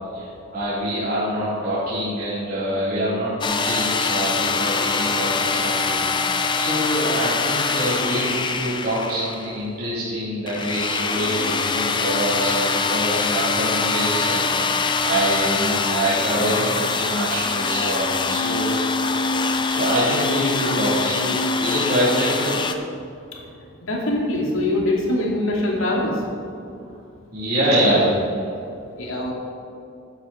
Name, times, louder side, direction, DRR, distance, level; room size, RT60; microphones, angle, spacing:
voice 1, 0.5-6.0 6.5-14.4 15.0-18.8 19.7-22.6 27.3-28.2, right 1 dB, 45° right, -11 dB, 3.2 m, -25 dB
sound 1, 3.4-9.6 10.5-22.7, left 4 dB, 20° left, 0.5 m, -23 dB
voice 2, 23.9-26.1 29.0-29.3, left 1 dB, 75° left, -2 dB, 2.5 m, -23 dB
13.5 x 9.2 x 4.3 m, 2.6 s
head